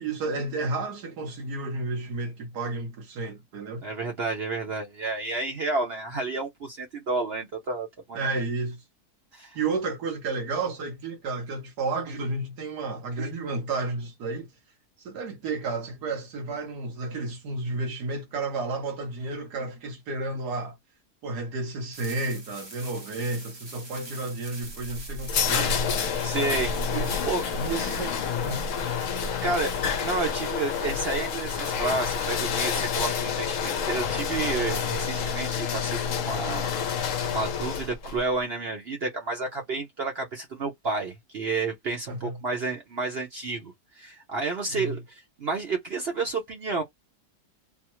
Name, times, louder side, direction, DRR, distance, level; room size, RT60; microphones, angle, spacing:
voice 1, 0.0-3.8 8.1-8.8 9.5-14.5 15.0-20.8 21.2-25.7 26.9-27.2 27.5-28.2 28.4-28.7 29.2-29.6 42.1-42.4 44.7-44.9, right 3 dB, 85° right, 1.5 m, -32 dB
voice 2, 3.8-8.4 9.3-9.6 26.2-26.8 27.3-27.4 29.4-29.7 30.0-36.7 37.3-46.8, right 3 dB, 50° right, 0.9 m, -30 dB
sound 1, 21.9-32.5, right 2 dB, 25° right, 0.6 m, -46 dB
sound 2, 24.6-38.2, left 6 dB, 60° left, 1.0 m, -28 dB
3.4 x 2.0 x 3.0 m
omnidirectional pair, 1.7 m